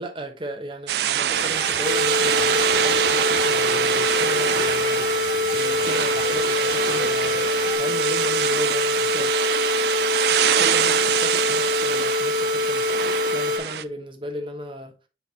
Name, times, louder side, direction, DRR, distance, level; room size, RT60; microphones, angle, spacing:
voice 1, 0.0-9.3 10.0-12.9 13.3-14.9, equal, 30° right, 1.0 m, -35 dB
sound 1, 0.9-13.8, right 10 dB, 60° right, 0.3 m, -24 dB
sound 2, 1.3-7.8, left 2 dB, 60° left, 1.5 m, -34 dB
sound 3, 1.8-13.6, left 3 dB, 45° right, 1.1 m, -25 dB
7.5 x 4.4 x 2.8 m
head